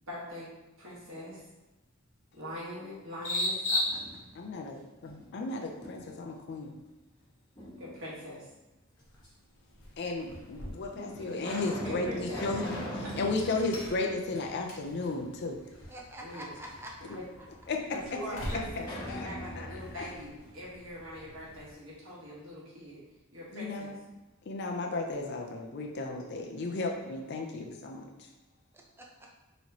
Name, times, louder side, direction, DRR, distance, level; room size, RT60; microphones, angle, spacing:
voice 1, 0.1-0.5 0.8-1.5 2.4-3.7 7.8-8.5 11.2-11.4 11.8-12.4 13.0-13.6 16.2-16.5 17.0-17.2 17.9-23.0 23.3-23.9, equal, 75° right, -7 dB, 1.3 m, -43 dB
sound 1, 1.5-18.5, left 1 dB, 35° left, 1.0 m, -42 dB
sound 2, 3.6-4.6 5.0-6.3 7.6-8.4 9.2-9.3 10.2-10.3 10.9-15.0 15.3-15.4 18.7-21.5, equal, 20° left, 1.2 m, -42 dB
voice 2, 4.3-6.7 10.0-15.6 17.7-17.8 19.1-19.3 19.6-19.7 20.0-20.1 23.5-24.0 24.5-28.3, left 3 dB, 55° left, 2 dB, 0.4 m, -34 dB
sound 3, 9.0-21.7, equal, 70° left, 1.0 m, -48 dB
voice 3, 15.9-17.5 28.7-29.3, equal, 10° right, -1 dB, 0.5 m, -46 dB
4.1 x 3.0 x 2.8 m, 1.1 s
head